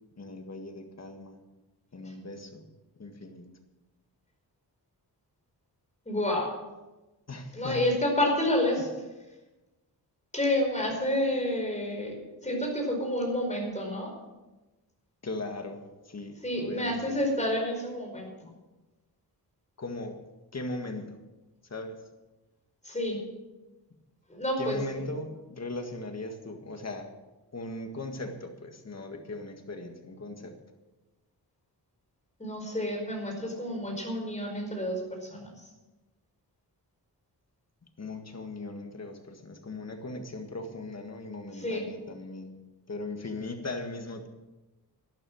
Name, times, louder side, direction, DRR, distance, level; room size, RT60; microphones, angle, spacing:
voice 1, 0.2-1.4 1.9-2.7 3.0-3.5 7.3-7.9 15.2-17.0 19.8-20.2 20.5-21.2 21.7-22.0 24.6-27.1 27.5-30.6 38.0-42.6 42.9-44.3, left 2 dB, 40° left, 5 dB, 1.8 m, -38 dB
voice 2, 6.0-6.5 7.5-8.9 10.3-12.1 12.4-14.1 16.4-18.5 22.8-23.2 24.3-25.0 32.4-35.5 41.6-41.8, left 1 dB, 20° left, 0 dB, 5.0 m, -29 dB
12.5 x 12.0 x 6.4 m, 1.1 s
wide cardioid pair, 120°, 38 cm